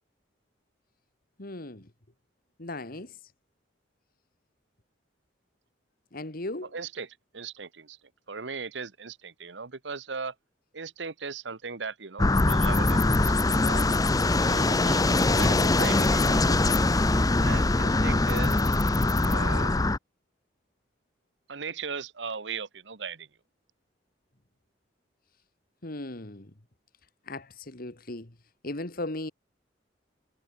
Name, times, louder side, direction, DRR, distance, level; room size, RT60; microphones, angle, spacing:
voice 1, 1.4-1.9 2.6-3.2 6.1-6.7 25.8-26.5 27.3-28.3 28.6-29.3, left 2 dB, 55° left, 2.2 m, -37 dB
voice 2, 6.6-8.0 8.3-10.3 10.7-13.9 14.3-18.6 19.2-19.7 21.5-23.3, right 5 dB, 75° right, 1.2 m, -38 dB
sound 1, 12.2-20.0, left 2 dB, 20° left, 0.6 m, -23 dB
head